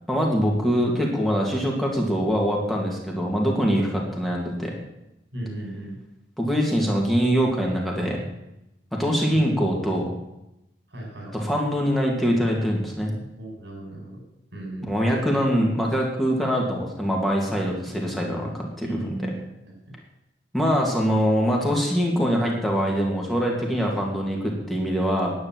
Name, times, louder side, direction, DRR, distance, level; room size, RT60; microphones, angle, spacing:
voice 1, 0.1-4.7 6.4-8.2 8.9-10.1 11.3-13.1 14.8-19.3 20.5-25.3, equal, ahead, -2 dB, 2.4 m, -23 dB
voice 2, 5.3-6.0 9.3-9.5 10.9-11.3 13.4-14.2 14.5-14.9 18.8-19.3, right 1 dB, 80° right, 1 dB, 5.7 m, -35 dB
10.0 x 9.6 x 7.8 m, 0.89 s
head